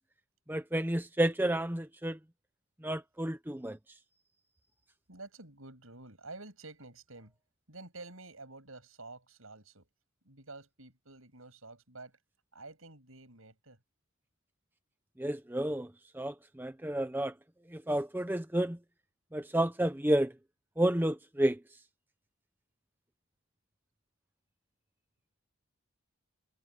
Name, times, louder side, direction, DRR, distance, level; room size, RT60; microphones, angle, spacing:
voice 1, 0.5-2.2 2.8-3.8 15.2-15.9 16.1-17.3 17.7-18.8 19.3-20.3 20.8-21.6, right 1 dB, 10° right, 0.8 m, -30 dB
voice 2, 5.1-7.3 7.7-9.9 10.2-12.2 12.5-13.8, right 3 dB, 75° right, 6.8 m, -50 dB
head